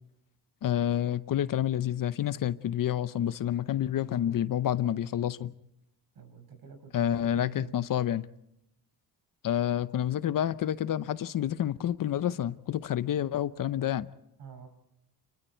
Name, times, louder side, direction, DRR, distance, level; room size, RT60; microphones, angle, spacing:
voice 1, 0.6-5.5 6.9-8.3 9.4-14.1, left 11 dB, 50° left, 0.8 m, -29 dB
voice 2, 6.1-7.8 14.4-14.7, right 6 dB, 55° right, 6.0 m, -48 dB
29.5 x 21.5 x 4.5 m
cardioid pair, 130°, 41 cm